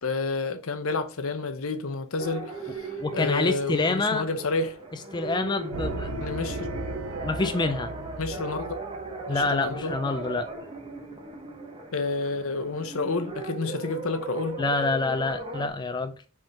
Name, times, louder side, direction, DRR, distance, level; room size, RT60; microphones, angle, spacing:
voice 1, 0.0-4.8 6.2-6.7 8.2-8.8 9.3-9.9 11.9-14.6, left 3 dB, 70° left, 0.8 m, -30 dB
sound 1, 2.2-15.7, right 2 dB, 25° right, 1.1 m, -37 dB
voice 2, 3.0-4.3 5.1-6.1 7.2-7.9 9.3-10.5 14.6-16.1, left 3 dB, 20° left, 0.3 m, -27 dB
sound 2, 5.7-10.5, right 3 dB, 75° right, 0.6 m, -37 dB
5.1 x 3.6 x 5.7 m
head